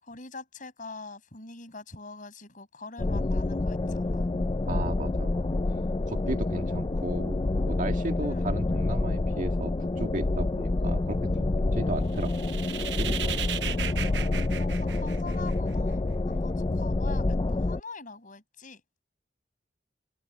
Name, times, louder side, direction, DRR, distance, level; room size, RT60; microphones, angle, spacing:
voice 1, 0.0-4.3 8.2-8.4 13.7-18.8, left 3 dB, 50° left, 7.4 m, -44 dB
sound 1, 3.0-17.8, left 2 dB, 30° left, 0.4 m, -28 dB
voice 2, 4.7-5.5 6.1-11.2 11.7-12.3 13.0-13.4, right 1 dB, 50° right, 2.0 m, -35 dB
sound 2, 12.1-15.7, right 10 dB, 75° right, 0.9 m, -36 dB
open air
head